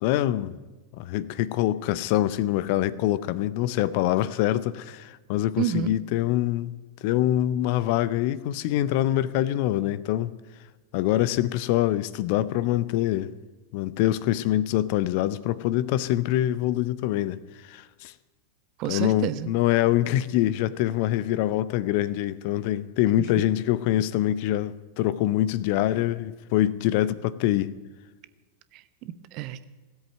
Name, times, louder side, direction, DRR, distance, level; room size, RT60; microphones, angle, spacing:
voice 1, 0.0-0.5 0.9-6.7 7.0-10.3 10.9-13.3 13.7-17.4 17.6-18.1 18.9-27.7, left 13 dB, 45° left, 0.6 m, -25 dB
voice 2, 5.6-5.9 18.8-19.5 28.7-29.6, right 12 dB, 40° right, 0.8 m, -30 dB
17.0 x 8.1 x 9.0 m
figure-of-eight pair, 90°, 0 cm